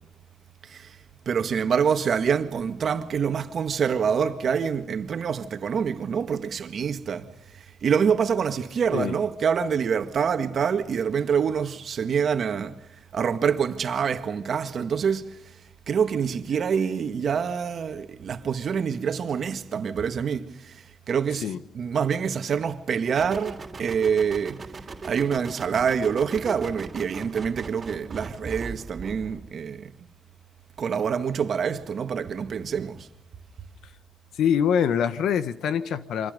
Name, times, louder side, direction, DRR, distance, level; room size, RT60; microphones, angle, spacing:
voice 1, 0.6-1.0 1.3-12.8 13.1-15.5 15.9-21.5 21.7-24.7 25.0-29.9 30.8-33.1, right 7 dB, 55° right, 1.9 m, -26 dB
sound 1, 23.2-29.5, right 4 dB, 30° right, 3.3 m, -39 dB
voice 2, 34.3-36.3, left 8 dB, 75° left, 1.4 m, -24 dB
28.5 x 25.0 x 5.3 m
cardioid pair, 90°, 0 cm